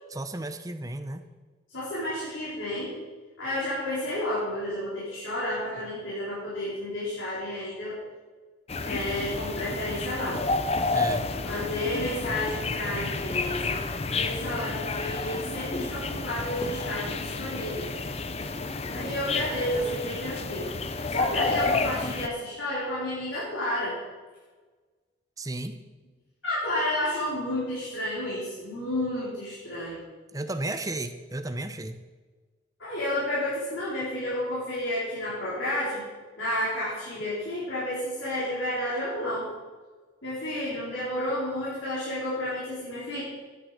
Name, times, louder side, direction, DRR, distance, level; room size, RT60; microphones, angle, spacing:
voice 1, 0.1-1.2 10.9-11.3 25.4-25.8 30.3-32.0, right 2 dB, 20° right, 9 dB, 0.7 m, -33 dB
voice 2, 1.7-2.9 3.4-8.0 8.8-10.4 11.4-13.8 14.1-17.9 18.3-18.4 18.9-20.7 21.1-24.0 26.4-30.0 32.8-36.0 36.4-39.5 40.2-43.2, left 1 dB, 85° left, -9 dB, 4.4 m, -31 dB
sound 1, 8.7-22.3, left 3 dB, 30° left, 0.6 m, -30 dB
13.0 x 9.1 x 5.1 m, 1.3 s
head